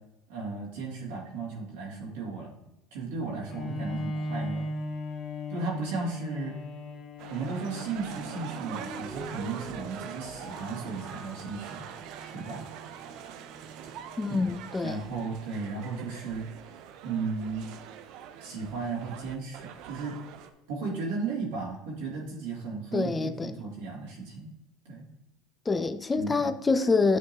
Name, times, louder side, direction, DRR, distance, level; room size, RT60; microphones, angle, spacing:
voice 1, 0.3-2.5 2.9-4.7 5.5-6.5 7.3-11.8 12.3-12.6 14.8-16.4 17.0-17.7 18.4-20.1 20.7-24.5 24.8-25.1 26.1-26.5, right 4 dB, 80° right, 2.3 m, -35 dB
Bowed string instrument, 3.5-9.1, left 1 dB, 45° left, 0.7 m, -37 dB
sound 1, 7.2-20.5, right 9 dB, 65° right, 0.5 m, -44 dB
sound 2, 7.4-14.6, right 2 dB, 35° right, 1.7 m, -47 dB
voice 2, 14.2-15.0 22.9-23.6 25.7-27.2, left 4 dB, 20° left, 0.3 m, -26 dB
9.3 x 3.8 x 2.9 m
supercardioid pair, 100°, 0 cm